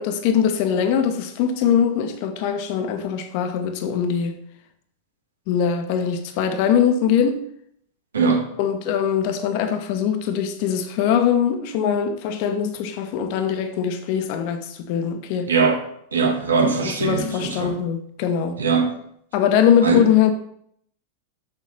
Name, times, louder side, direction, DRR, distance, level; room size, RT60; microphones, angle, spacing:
voice 1, 0.0-4.4 5.5-7.5 8.6-15.5 16.8-18.6 19.3-20.3, left 8 dB, 45° left, 1.0 m, -22 dB
voice 2, 8.1-8.5 15.5-15.8 16.1-17.7 18.6-18.9 19.8-20.0, right 4 dB, 70° right, 1.6 m, -20 dB
7.1 x 6.8 x 5.6 m
figure-of-eight pair, 90°, 0 cm